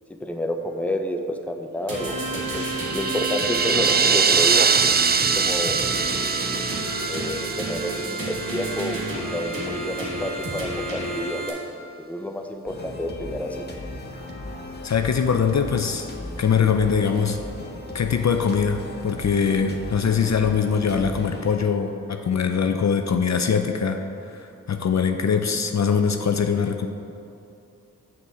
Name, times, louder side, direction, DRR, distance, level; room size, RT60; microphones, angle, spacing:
voice 1, 0.2-2.2 2.5-4.6 5.4-5.8 7.1-11.6 12.0-13.6, left 1 dB, 5° left, 4 dB, 0.8 m, -29 dB
sound 1, 1.9-11.5, right 2 dB, 75° right, 2.2 m, -30 dB
sound 2, 2.5-8.7, right 6 dB, 30° right, 0.3 m, -23 dB
sound 3, 12.7-22.8, left 1 dB, 30° left, 1.4 m, -37 dB
voice 2, 14.8-16.1 16.4-17.4 17.9-26.9, left 6 dB, 55° left, 6 dB, 0.6 m, -22 dB
7.6 x 6.7 x 4.8 m, 2.7 s
cardioid pair, 50°, 34 cm